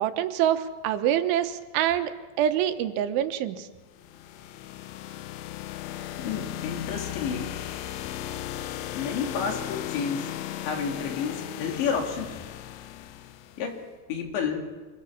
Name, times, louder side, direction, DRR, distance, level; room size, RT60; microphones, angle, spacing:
voice 1, 0.0-3.7, right 10 dB, 85° right, 9 dB, 3.5 m, -26 dB
sound 1, 3.9-13.7, left 12 dB, 90° left, 3.4 m, -36 dB
voice 2, 6.2-7.5 8.9-10.3 10.6-12.3 13.6-13.8 14.1-14.7, left 6 dB, 75° left, 3 dB, 4.7 m, -30 dB
26.0 x 22.0 x 7.1 m, 1.3 s
omnidirectional pair, 5.3 m